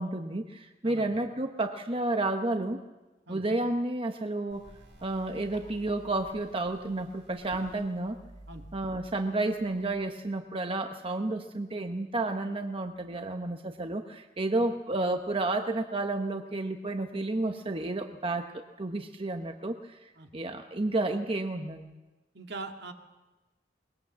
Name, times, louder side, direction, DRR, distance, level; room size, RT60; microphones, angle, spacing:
voice 1, 0.0-2.8 3.3-4.7 5.0-8.2 8.7-21.9, right 2 dB, 30° right, 6 dB, 0.9 m, -31 dB
sound 1, 4.5-10.0, right 1 dB, 85° right, 6.1 m, -52 dB
voice 2, 22.3-22.9, right 3 dB, 65° right, 4 dB, 2.1 m, -41 dB
22.0 x 21.0 x 7.3 m, 1.1 s
head